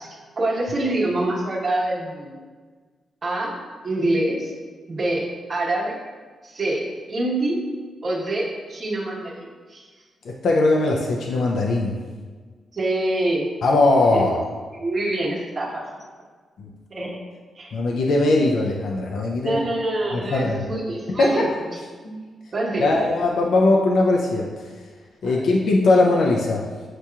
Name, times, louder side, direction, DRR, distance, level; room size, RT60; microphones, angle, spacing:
voice 1, 0.0-2.4 3.2-3.6 3.8-4.5 4.9-6.0 6.4-7.6 8.0-9.8 12.7-13.5 14.1-14.3 14.7-15.8 16.9-17.2 17.6-17.8 19.4-22.2 22.5-23.1 25.2-25.5, right 1 dB, 40° right, -5 dB, 1.2 m, -26 dB
voice 2, 10.3-11.9 13.6-14.4 16.6-16.7 17.7-19.6 20.1-20.7 21.2-21.5 22.8-24.5 25.2-26.6, left 2 dB, 70° left, -1 dB, 0.4 m, -20 dB
7.4 x 2.8 x 2.3 m, 1.5 s
cardioid pair, 100°, 0 cm